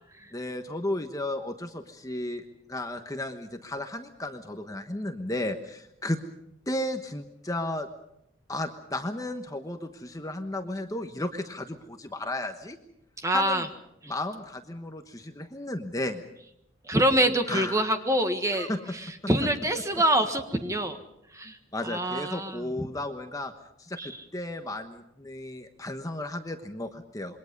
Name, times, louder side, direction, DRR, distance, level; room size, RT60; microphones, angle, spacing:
voice 1, 0.3-2.4 2.7-6.2 6.7-7.9 8.5-12.8 13.3-13.7 14.1-16.2 17.5-17.9 18.5-18.9 21.7-23.5 23.8-27.4, left 1 dB, 15° left, 6 dB, 1.2 m, -34 dB
voice 2, 13.2-13.7 14.0-14.1 16.8-18.7 19.2-21.0 21.3-21.6 21.8-22.7 24.0-24.1, right 1 dB, 15° right, 7 dB, 1.5 m, -25 dB
27.0 x 23.0 x 5.3 m, 0.79 s
head